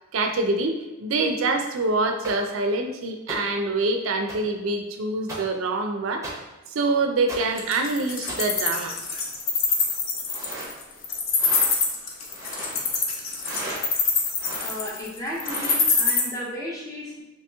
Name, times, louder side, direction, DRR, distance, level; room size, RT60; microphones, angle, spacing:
voice 1, 0.1-6.3 6.7-9.0, right 3 dB, 70° right, 5 dB, 0.4 m, -25 dB
sound 1, 2.2-2.3 3.3-3.4 4.3-4.4 5.3-5.4 6.2-6.3 7.3-7.4 8.3-8.4 10.2-10.7 11.4-11.7 12.3-12.8 13.4-13.8 14.4-14.8 15.4-15.8, right 2 dB, 15° right, 0.7 m, -35 dB
Wild animals, 7.6-16.2, left 5 dB, 70° left, 0.6 m, -24 dB
voice 2, 14.6-17.2, equal, 15° left, -5 dB, 0.7 m, -34 dB
2.9 x 2.9 x 3.4 m, 1.1 s
head